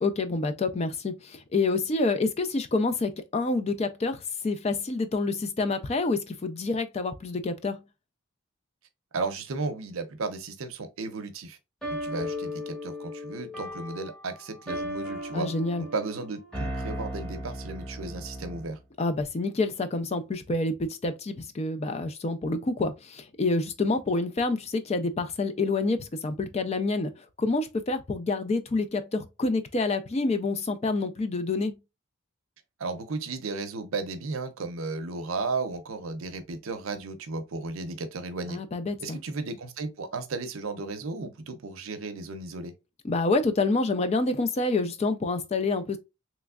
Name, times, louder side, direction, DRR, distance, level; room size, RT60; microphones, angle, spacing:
voice 1, 0.0-7.8 15.3-15.8 19.0-31.8 38.5-39.2 43.0-46.0, left 3 dB, 30° left, 0.3 m, -27 dB
voice 2, 9.1-11.6 12.0-15.5 15.8-18.8 32.8-38.6 39.0-42.7, right 3 dB, 80° right, 0.6 m, -34 dB
sound 1, 11.8-18.8, equal, ahead, 0.9 m, -36 dB
3.3 x 3.0 x 2.3 m
head